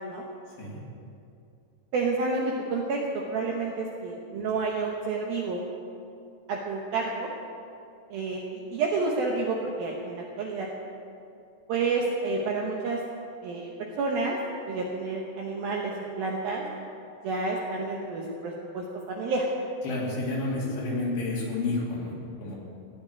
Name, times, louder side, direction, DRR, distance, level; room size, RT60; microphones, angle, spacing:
voice 1, 1.9-5.6 6.5-7.3 8.1-10.7 11.7-13.0 13.4-14.4 14.7-16.7 17.2-19.5 19.9-20.0, right 3 dB, 75° right, -1 dB, 2.3 m, -29 dB
voice 2, 19.8-22.6, left 2 dB, 65° left, -4 dB, 4.8 m, -30 dB
17.5 x 6.0 x 9.5 m, 2.6 s
omnidirectional pair, 5.5 m